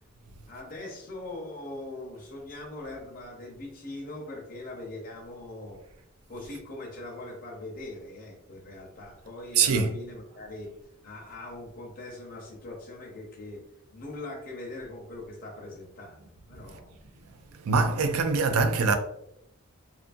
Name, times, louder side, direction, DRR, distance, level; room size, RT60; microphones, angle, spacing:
voice 1, 0.5-5.8 6.3-10.7 11.0-13.6 13.9-17.4, left 2 dB, 40° left, 0.6 m, -41 dB
voice 2, 9.5-9.9 17.6-19.0, right 4 dB, 75° right, 0.4 m, -23 dB
2.6 x 2.4 x 2.5 m
head